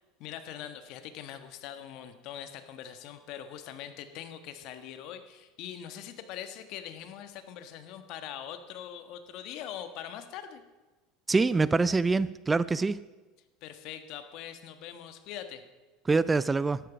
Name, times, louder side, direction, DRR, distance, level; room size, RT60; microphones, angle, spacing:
voice 1, 0.2-10.6 13.6-15.6, left 10 dB, 60° left, 9 dB, 1.3 m, -42 dB
voice 2, 11.3-13.0 16.1-16.8, right 3 dB, 15° right, 17 dB, 0.4 m, -25 dB
12.5 x 11.0 x 5.1 m, 1.2 s
supercardioid pair, 105°, 0 cm